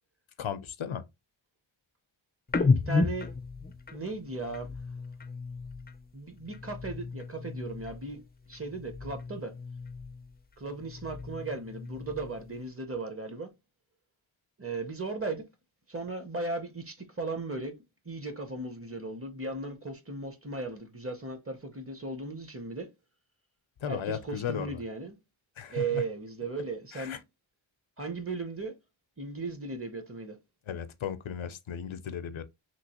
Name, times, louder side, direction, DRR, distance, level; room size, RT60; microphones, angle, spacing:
voice 1, 0.4-1.0 23.8-24.8 25.6-26.0 26.9-27.2 30.7-32.4, left 8 dB, 70° left, 0.5 m, -35 dB
sound 1, 2.5-6.1 6.4-8.2 8.5-10.4 10.7-12.6, left 4 dB, 20° left, 0.3 m, -33 dB
voice 2, 2.6-3.3 3.9-4.7 6.1-8.2 8.5-9.5 10.6-13.5 14.6-15.4 15.9-17.8 18.1-22.9 23.9-25.2 25.7-27.2 28.0-28.7 29.2-30.4, right 3 dB, 30° right, 0.7 m, -36 dB
3.0 x 2.9 x 2.8 m
wide cardioid pair, 60°, 49 cm